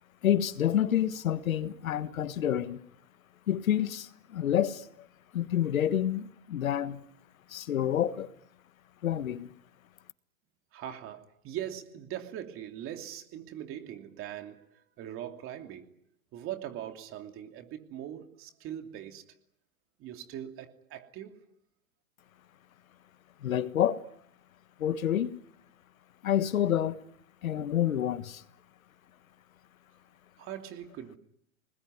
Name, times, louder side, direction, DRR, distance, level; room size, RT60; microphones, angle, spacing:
voice 1, 0.2-2.8 3.5-5.1 5.3-7.0 7.5-8.3 9.0-9.5 23.4-24.0 24.8-25.4 26.2-27.0 27.4-28.4, left 10 dB, 80° left, 1.5 m, -28 dB
voice 2, 10.7-16.0 16.3-19.3 20.0-21.5 30.4-31.2, right 11 dB, 30° right, 2.9 m, -41 dB
29.0 x 20.5 x 9.6 m
hypercardioid pair, 130°, 41 cm